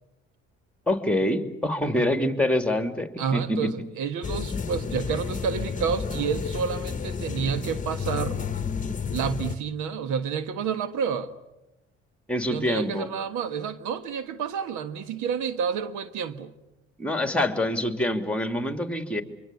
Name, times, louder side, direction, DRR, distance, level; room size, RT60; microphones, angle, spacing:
voice 1, 0.9-3.7 12.3-13.1 17.0-19.2, left 1 dB, 5° left, 2.8 m, -25 dB
voice 2, 3.2-8.4 9.1-11.3 12.4-16.5, right 7 dB, 80° right, 1.6 m, -29 dB
sound 1, 4.2-9.5, left 6 dB, 25° left, 1.3 m, -31 dB
25.5 x 24.0 x 8.4 m
supercardioid pair, 80°, 30 cm